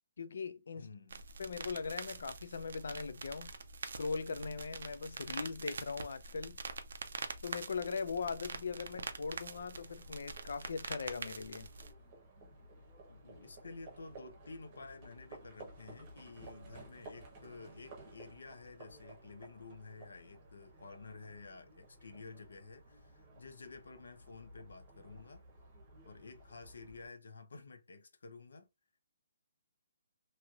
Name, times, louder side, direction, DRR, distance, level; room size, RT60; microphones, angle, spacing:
voice 1, 0.2-0.9 1.4-3.5 4.0-6.6 7.4-11.7, left 5 dB, 55° left, 0.4 m, -40 dB
voice 2, 0.7-1.2 13.1-25.4 26.0-28.7, left 3 dB, 75° left, 0.7 m, -52 dB
sound 1, 1.1-11.9, right 4 dB, 55° right, 0.5 m, -45 dB
Livestock farm animals working animals, 8.1-27.1, right 2 dB, 20° right, 0.9 m, -56 dB
3.1 x 2.8 x 2.4 m
hypercardioid pair, 180°, 0 cm